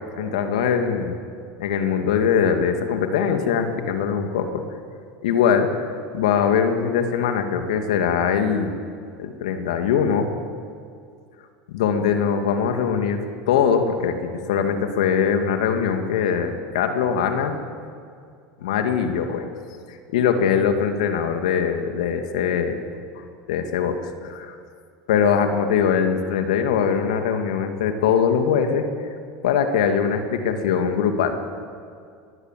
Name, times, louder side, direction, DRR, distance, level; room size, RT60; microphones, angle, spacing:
voice 1, 0.2-1.2 1.6-4.5 5.2-5.8 6.1-8.7 9.2-10.3 11.7-17.5 18.6-19.5 19.9-22.8 23.5-24.6 25.1-28.9 29.4-31.3, left 7 dB, 80° left, 5 dB, 2.5 m, -22 dB
22.5 x 21.5 x 7.8 m, 2.3 s
hypercardioid pair, 90°, 4 cm